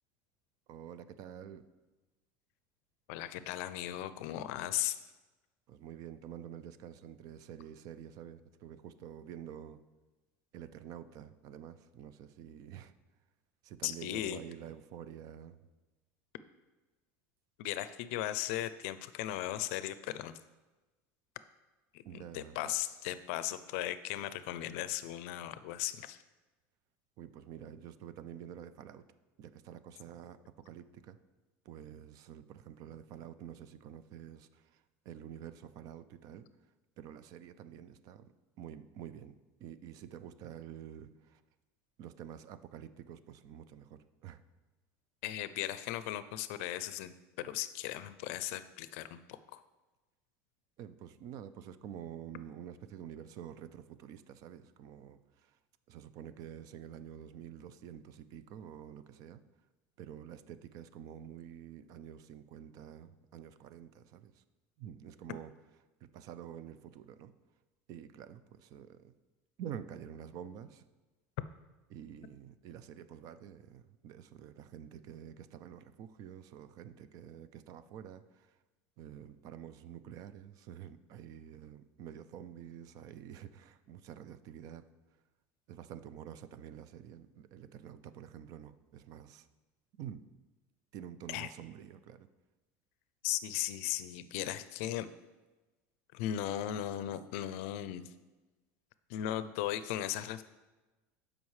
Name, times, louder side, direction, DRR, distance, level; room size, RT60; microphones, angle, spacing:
voice 1, 0.7-1.6 5.7-9.8 10.5-12.9 13.6-15.7 22.0-22.7 27.2-29.0 29.4-31.2 31.6-41.4 42.0-44.4 50.8-55.6 55.9-59.4 60.0-64.4 64.8-65.5 66.0-67.3 67.9-69.1 69.6-70.8 71.9-78.6 79.0-84.9 85.7-89.5 90.0-90.3 90.9-92.3, right 9 dB, 55° right, 13 dB, 0.5 m, -48 dB
voice 2, 3.1-5.0 13.8-14.4 17.6-20.3 22.3-26.2 45.2-47.1 47.4-49.6 91.3-91.5 93.2-95.1 96.1-98.1 99.1-100.4, left 13 dB, 75° left, 14 dB, 0.5 m, -37 dB
12.5 x 5.1 x 3.2 m, 1.2 s
supercardioid pair, 125°, 7 cm